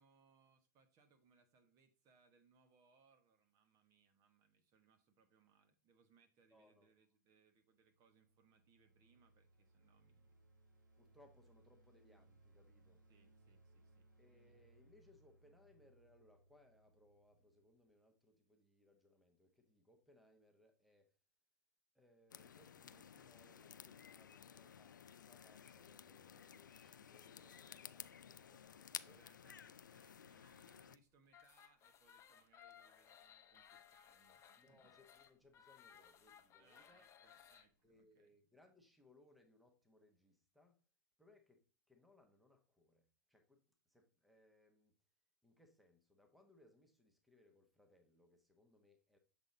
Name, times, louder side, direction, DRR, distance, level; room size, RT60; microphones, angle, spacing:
voice 1, 0.0-10.4 13.1-14.1 29.0-34.9 36.6-38.4, right 5 dB, 35° right, 1.2 m, -74 dB
voice 2, 6.5-6.9 11.0-13.0 14.2-21.1 21.9-29.2 34.6-37.1 37.8-40.8 41.2-45.0 45.4-49.2, left 1 dB, ahead, 1.0 m, -70 dB
sound 1, 7.6-17.8, right 2 dB, 90° right, 1.6 m, -70 dB
sound 2, 22.3-31.0, left 8 dB, 85° left, 0.4 m, -55 dB
sound 3, 31.3-37.7, left 9 dB, 30° left, 0.9 m, -63 dB
7.1 x 4.1 x 3.8 m
hypercardioid pair, 105°, 10 cm